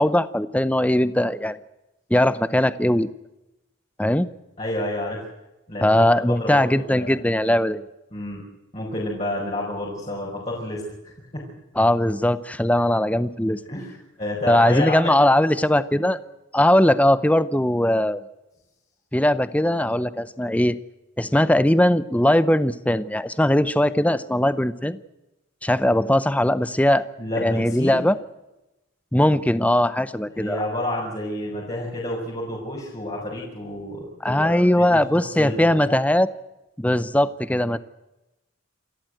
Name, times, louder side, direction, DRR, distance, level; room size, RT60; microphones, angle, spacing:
voice 1, 0.0-1.6 2.1-3.1 4.0-4.3 5.8-7.8 11.8-13.6 14.5-16.2 16.5-18.2 19.1-20.8 21.2-25.0 25.6-27.0 27.4-28.2 29.1-30.6 34.2-36.3 36.8-37.8, left 1 dB, 5° left, 14 dB, 0.7 m, -20 dB
voice 2, 4.6-5.2 5.7-6.1 6.4-7.2 8.1-8.4 8.7-11.4 13.7-15.2 27.2-28.1 30.4-35.0 35.4-36.0, left 1 dB, 30° left, -4 dB, 5.4 m, -30 dB
28.0 x 13.5 x 7.8 m, 0.97 s
head